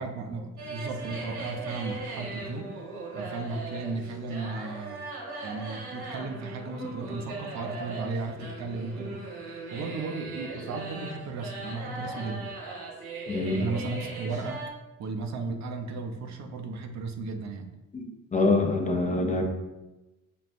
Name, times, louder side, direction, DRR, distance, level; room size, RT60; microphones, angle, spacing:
voice 1, 0.0-2.7 3.1-5.0 5.4-9.3 9.7-12.5 13.5-14.7 15.0-17.7 18.3-18.6, right 3 dB, 65° right, 4 dB, 0.6 m, -35 dB
sound 1, 0.6-14.7, right 3 dB, 85° right, 1.4 m, -39 dB
voice 2, 13.3-13.6 17.9-19.4, left 3 dB, 25° left, 3 dB, 0.6 m, -25 dB
6.7 x 2.2 x 2.5 m, 1.0 s
cardioid pair, 90°, 30 cm